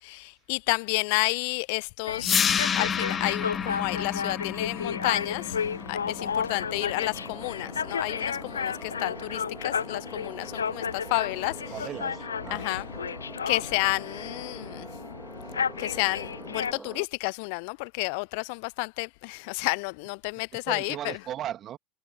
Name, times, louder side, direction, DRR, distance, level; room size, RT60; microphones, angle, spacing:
voice 1, 0.0-11.6 12.5-12.9 13.5-14.9 15.8-21.2, left 32 dB, 55° left, 0.8 m, -31 dB
sound 1, 2.1-16.7, left 6 dB, 80° left, 0.4 m, -33 dB
sound 2, 2.2-8.2, left 7 dB, 25° left, 1.2 m, -30 dB
sound 3, 4.7-17.1, right 4 dB, 15° right, 2.9 m, -45 dB
voice 2, 11.7-12.8 20.6-21.8, right 11 dB, 40° right, 2.9 m, -37 dB
figure-of-eight pair, 75°, 0 cm